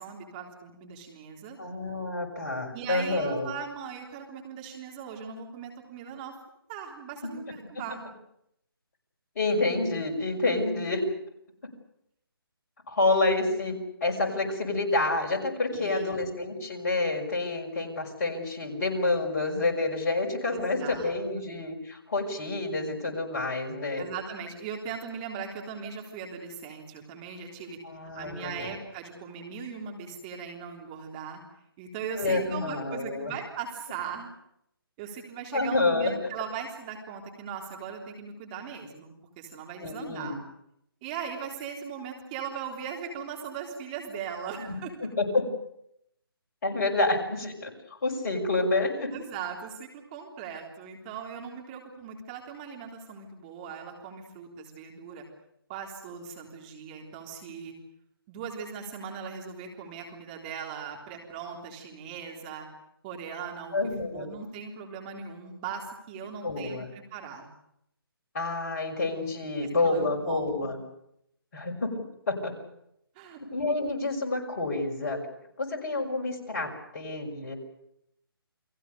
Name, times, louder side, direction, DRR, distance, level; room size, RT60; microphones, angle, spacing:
voice 1, 0.0-1.6 2.7-6.4 6.7-8.0 15.7-16.2 20.5-21.1 21.4-21.5 24.0-31.4 31.8-34.3 35.0-40.4 41.0-44.9 49.1-55.2 55.7-57.7 58.3-62.7 63.0-63.8 64.1-66.8 67.1-67.5 69.8-70.7 73.2-73.4, right 6 dB, 20° right, 1 dB, 3.7 m, -39 dB
voice 2, 1.6-3.5 9.3-11.0 12.9-13.7 14.0-24.1 27.8-28.7 32.2-33.3 35.5-36.1 39.8-40.4 44.6-45.5 46.6-49.1 63.7-64.3 66.4-66.9 68.3-70.8 71.5-72.5 73.5-75.2 75.6-77.5, left 2 dB, 40° left, 2 dB, 6.2 m, -28 dB
30.0 x 22.0 x 6.8 m, 0.76 s
figure-of-eight pair, 145°, 13 cm